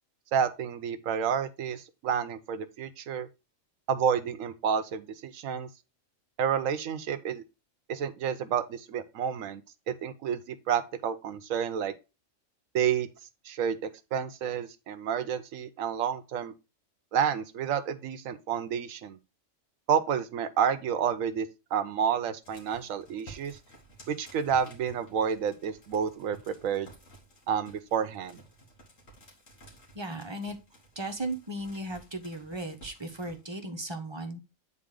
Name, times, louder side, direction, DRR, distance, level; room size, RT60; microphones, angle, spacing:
voice 1, 0.3-3.3 3.9-5.7 6.4-7.4 7.9-9.6 9.9-11.9 12.7-13.1 13.4-16.5 17.1-19.2 19.9-23.6 24.1-26.9 27.5-28.4, right 8 dB, 90° right, 1.1 m, -30 dB
sound 1, 22.4-33.4, right 1 dB, 75° left, 2.4 m, -54 dB
voice 2, 29.9-30.6 31.0-34.4, right 1 dB, 25° right, 0.9 m, -36 dB
8.5 x 4.1 x 3.7 m
omnidirectional pair, 1.4 m